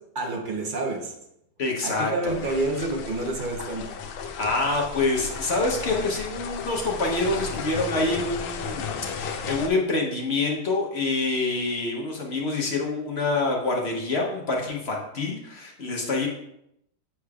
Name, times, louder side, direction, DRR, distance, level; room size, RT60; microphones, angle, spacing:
voice 1, 0.1-1.2 1.8-3.8, right 2 dB, 50° right, 1 dB, 0.5 m, -28 dB
voice 2, 1.6-2.5 4.3-16.3, left 3 dB, 50° left, -1 dB, 0.8 m, -26 dB
sound 1, 2.3-9.7, left 5 dB, 75° left, 1.4 m, -34 dB
8.4 x 5.0 x 2.4 m, 0.78 s
omnidirectional pair, 2.1 m